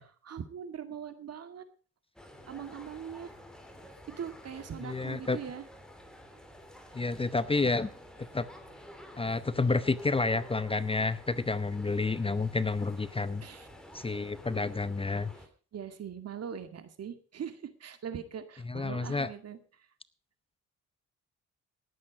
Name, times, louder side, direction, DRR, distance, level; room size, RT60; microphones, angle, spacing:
voice 1, 0.2-1.6 2.5-3.3 4.2-5.6 13.4-13.7 15.7-19.6, right 8 dB, 55° right, 10 dB, 2.1 m, -41 dB
sound 1, 2.2-15.5, equal, ahead, 3.2 m, -50 dB
voice 2, 4.8-5.4 6.9-7.9 8.3-8.5 9.2-13.4 13.9-15.3 18.7-19.3, left 3 dB, 20° left, 15 dB, 0.7 m, -30 dB
19.0 x 8.6 x 5.0 m, 0.38 s
cardioid pair, 90°, 30 cm